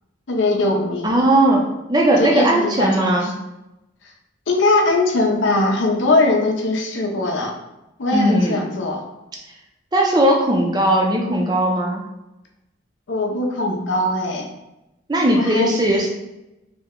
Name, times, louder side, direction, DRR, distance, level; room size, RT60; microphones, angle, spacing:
voice 1, 0.3-1.2 2.2-3.2 4.5-7.6 8.0-9.0 13.1-14.5 15.3-16.1, left 2 dB, 75° left, 1 dB, 0.6 m, -20 dB
voice 2, 1.0-1.6 1.9-3.3 8.1-8.6 9.9-12.0 15.1-16.1, right 1 dB, 20° right, 0 dB, 0.4 m, -18 dB
2.8 x 2.1 x 3.5 m, 0.94 s
head